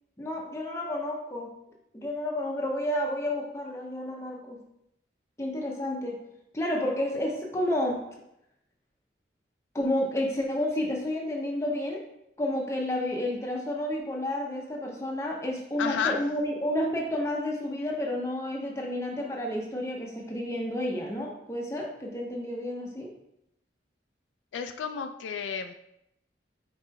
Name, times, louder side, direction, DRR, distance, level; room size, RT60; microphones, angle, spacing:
voice 1, 0.2-1.5 1.9-4.6 5.4-6.2 6.5-8.0 9.7-12.0 12.4-23.1, left 1 dB, 15° left, 0 dB, 0.6 m, -30 dB
voice 2, 15.8-16.2 24.5-25.7, left 6 dB, 85° left, 7 dB, 0.3 m, -31 dB
4.9 x 4.1 x 2.2 m, 0.80 s
head